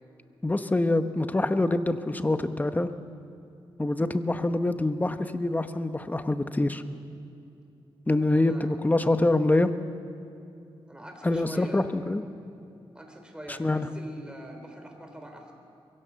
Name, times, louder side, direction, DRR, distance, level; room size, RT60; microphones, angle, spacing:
voice 1, 0.4-2.9 3.8-6.8 8.1-9.7 11.2-12.2 13.6-13.9, left 2 dB, 20° left, 9 dB, 1.0 m, -25 dB
voice 2, 8.2-8.8 10.9-12.0 12.9-15.5, right 1 dB, 10° right, 3 dB, 3.7 m, -43 dB
22.5 x 17.0 x 7.0 m, 2.6 s
cardioid pair, 80°, 9 cm